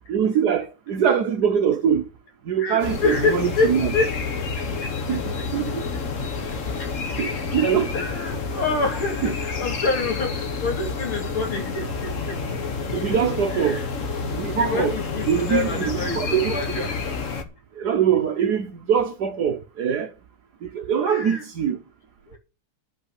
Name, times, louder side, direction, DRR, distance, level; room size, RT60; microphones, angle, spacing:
voice 1, 0.1-2.1 2.5-3.9 5.1-5.8 7.2-7.9 9.2-9.3 12.9-13.8 14.3-15.0 15.3-16.6 17.8-20.1 20.6-21.8, right 8 dB, 60° right, 1.1 m, -23 dB
voice 2, 2.6-4.1 6.8-6.9 7.9-12.4 13.6-13.8 14.5-17.0 21.1-21.4 22.3-22.4, left 3 dB, 70° left, 3.4 m, -27 dB
sound 1, 2.8-17.4, left 4 dB, 40° left, 1.4 m, -29 dB
10.5 x 5.6 x 8.2 m
omnidirectional pair, 2.4 m